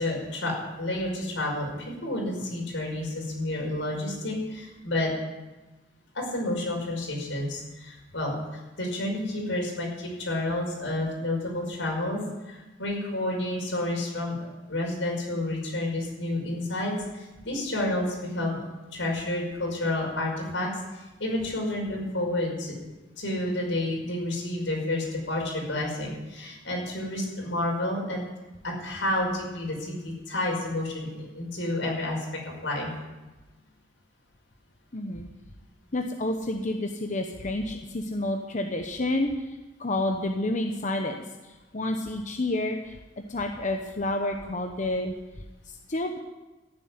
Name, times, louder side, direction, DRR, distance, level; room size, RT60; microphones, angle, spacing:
voice 1, 0.0-5.1 6.1-18.6 18.9-22.7 23.2-28.2 28.6-32.9, left 1 dB, 85° left, -1 dB, 5.4 m, -30 dB
voice 2, 34.9-35.3 35.9-43.0 43.3-46.2, left 1 dB, 40° left, 4 dB, 1.0 m, -30 dB
15.0 x 7.6 x 9.7 m, 1.1 s
head